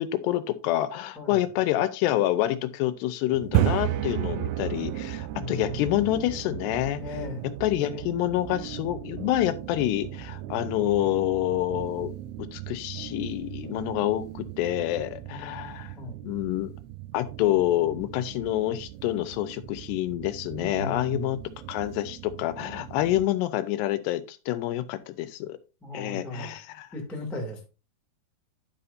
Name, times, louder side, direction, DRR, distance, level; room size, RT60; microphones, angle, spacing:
voice 1, 0.0-7.0 7.6-15.9 16.2-16.7 17.1-21.4 21.7-25.6 25.9-26.9, left 14 dB, 85° left, 12 dB, 2.7 m, -27 dB
sound 1, 3.3-23.2, right 13 dB, 80° right, 2.3 m, -35 dB
voice 2, 5.3-5.9 7.0-7.5 15.9-16.2 20.6-21.4 25.8-26.5 26.9-27.7, left 2 dB, ahead, -1 dB, 0.7 m, -36 dB
11.0 x 5.7 x 2.6 m, 0.30 s
omnidirectional pair, 4.9 m